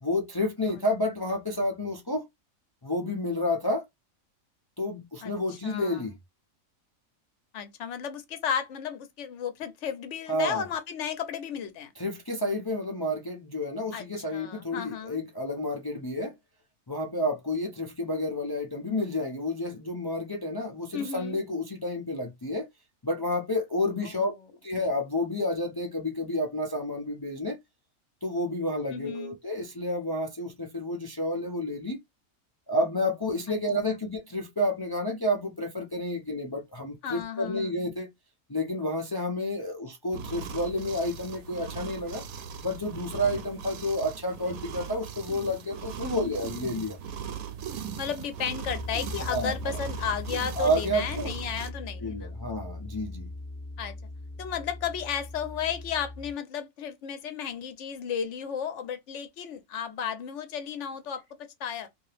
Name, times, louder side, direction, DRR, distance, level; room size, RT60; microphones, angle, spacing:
voice 1, 0.0-2.3 2.8-3.8 4.8-6.1 10.3-10.6 12.0-16.3 16.9-22.7 23.0-24.3 24.6-27.6 28.2-32.0 32.7-38.1 38.5-42.2 42.6-47.0 49.3-49.5 50.6-51.3 52.0-53.3, left 1 dB, 40° left, 0.3 m, -30 dB
voice 2, 5.2-6.0 7.5-11.9 13.9-14.1 14.3-15.2 20.9-21.4 28.9-29.4 37.0-37.6 46.0-46.3 48.0-52.3 53.8-53.9 54.4-61.9, left 7 dB, 65° left, 1.0 m, -34 dB
sound 1, 40.1-51.7, right 7 dB, 85° right, 1.1 m, -39 dB
sound 2, 48.6-56.3, left 2 dB, 10° left, 0.8 m, -39 dB
2.8 x 2.7 x 3.2 m
omnidirectional pair, 1.5 m